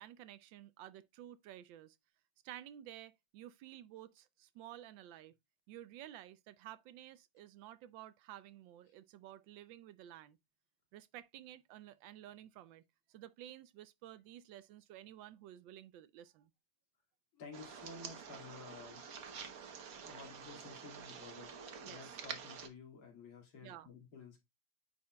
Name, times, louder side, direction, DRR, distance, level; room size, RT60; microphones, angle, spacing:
voice 1, 0.0-2.0 2.4-5.3 5.7-10.4 10.9-12.8 13.1-16.5 21.8-22.2 23.6-23.9, right 12 dB, 75° right, 1.2 m, -53 dB
voice 2, 17.3-19.0 19.4-21.5 21.8-24.4, left 4 dB, 85° left, 2.9 m, -53 dB
sound 1, 17.5-22.7, right 6 dB, 55° right, 1.2 m, -48 dB
9.4 x 4.4 x 2.2 m
omnidirectional pair, 2.2 m